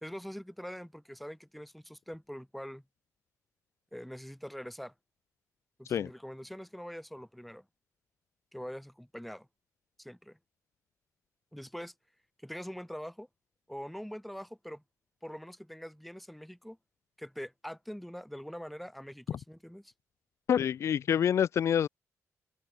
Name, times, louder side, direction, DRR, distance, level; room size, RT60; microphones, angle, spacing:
voice 1, 0.0-2.8 3.9-4.9 5.8-7.7 8.5-9.5 10.0-10.4 11.5-11.9 12.4-13.3 13.7-14.8 15.2-16.8 17.2-19.9, equal, ahead, 2.7 m, -43 dB
voice 2, 20.5-21.9, left 9 dB, 55° left, 1.4 m, -27 dB
wide cardioid pair, 175°, 6 cm